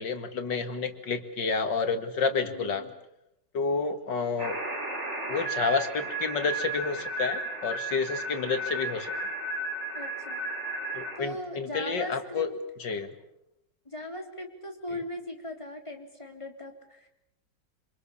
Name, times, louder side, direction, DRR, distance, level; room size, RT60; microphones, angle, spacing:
voice 1, 0.0-2.8 3.5-4.6 5.3-9.1 10.9-12.5 12.8-13.1, left 4 dB, 80° left, 8 dB, 2.7 m, -30 dB
voice 2, 2.3-2.9 10.0-10.4 11.2-12.5 13.9-17.1, left 1 dB, 15° left, 3 dB, 3.8 m, -39 dB
sound 1, 4.4-11.2, right 2 dB, 40° right, 4.5 m, -34 dB
27.5 x 26.0 x 7.1 m, 0.83 s
omnidirectional pair, 1.9 m